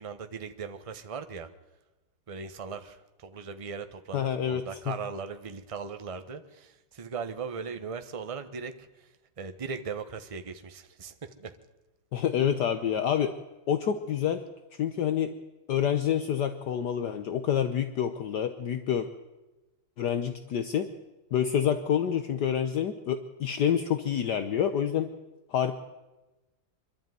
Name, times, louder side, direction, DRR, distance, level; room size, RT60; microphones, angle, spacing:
voice 1, 0.0-1.5 2.3-11.6, right 5 dB, 25° right, 9 dB, 0.7 m, -39 dB
voice 2, 4.1-4.6 12.1-13.3 13.7-14.4 14.8-15.3 15.7-19.1 20.0-20.9 21.3-25.1 25.5-25.7, left 9 dB, 65° left, 8 dB, 1.4 m, -27 dB
23.5 x 12.0 x 9.3 m, 1.1 s
omnidirectional pair, 2.1 m